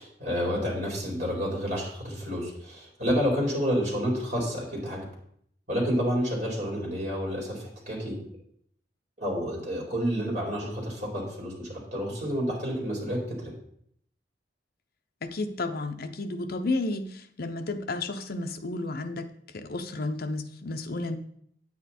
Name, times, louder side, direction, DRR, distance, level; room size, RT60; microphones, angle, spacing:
voice 1, 0.0-5.0 5.7-8.2 9.2-13.5, equal, 45° right, -3 dB, 4.2 m, -29 dB
voice 2, 15.2-17.1 17.4-19.3 19.5-21.2, left 2 dB, 55° left, 7 dB, 0.8 m, -32 dB
9.0 x 8.7 x 4.3 m, 0.68 s
head